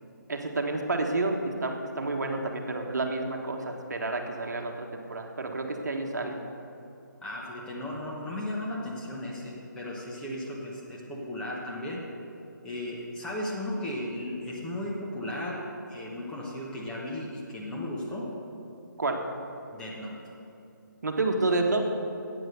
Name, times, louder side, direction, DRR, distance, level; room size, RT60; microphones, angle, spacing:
voice 1, 0.3-6.4 19.0-19.2 21.0-21.9, right 2 dB, 60° right, 3 dB, 1.3 m, -29 dB
voice 2, 7.2-12.1 12.6-18.4 19.7-20.2, left 1 dB, 5° left, -5 dB, 1.2 m, -35 dB
11.0 x 9.0 x 6.6 m, 2.8 s
figure-of-eight pair, 145°, 11 cm